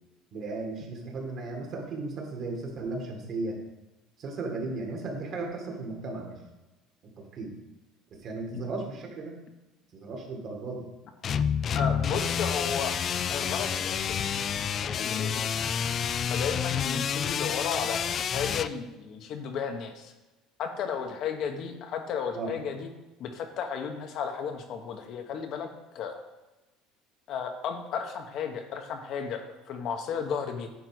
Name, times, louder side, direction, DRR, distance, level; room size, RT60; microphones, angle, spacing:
voice 1, 0.3-3.6 4.2-6.4 7.0-7.5 8.1-9.4 9.9-10.9 22.3-22.5, right 3 dB, 45° right, 1 dB, 2.0 m, -35 dB
sound 1, 11.2-18.7, left 7 dB, 35° left, 0.3 m, -29 dB
voice 2, 11.7-13.0 13.3-15.6 16.3-20.1 20.6-22.9 23.2-25.7 25.9-26.2 27.3-30.7, left 6 dB, 55° left, 5 dB, 1.0 m, -34 dB
9.5 x 4.0 x 6.0 m, 1.1 s
cardioid pair, 130°, 0 cm